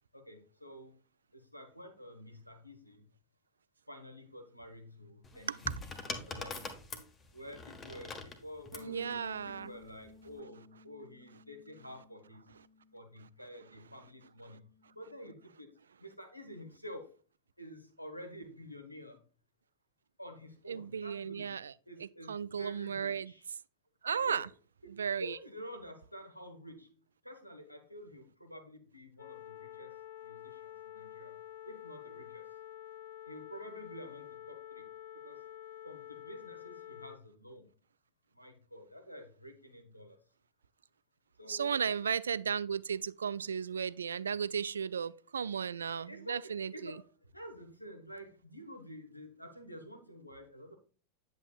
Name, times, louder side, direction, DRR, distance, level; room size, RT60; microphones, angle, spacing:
voice 1, 0.1-1.0 1.3-3.0 3.9-5.6 6.2-6.6 7.3-12.4 12.9-14.7 14.9-17.2 17.6-19.2 20.2-21.6 21.9-23.5 24.1-24.4 24.8-24.9 25.2-27.0 27.2-29.9 30.2-31.4 31.6-32.4 33.2-34.8 35.1-35.4 35.8-37.7 38.3-40.2 41.4-41.8 43.3-43.4 46.0-50.8, equal, 90° left, 1.4 m, -49 dB
sound 1, 5.2-8.9 10.0-10.3, left 3 dB, 20° left, 1.4 m, -43 dB
Bass guitar, 8.7-15.0, left 2 dB, 30° right, 1.0 m, -57 dB
voice 2, 8.8-9.7 20.7-21.7 22.3-23.3 24.0-24.5 25.0-25.4 41.5-47.0, right 7 dB, 70° right, 0.3 m, -35 dB
sound 2, 29.2-37.2, left 11 dB, 55° left, 1.0 m, -49 dB
9.3 x 8.0 x 2.4 m
figure-of-eight pair, 90°, 0 cm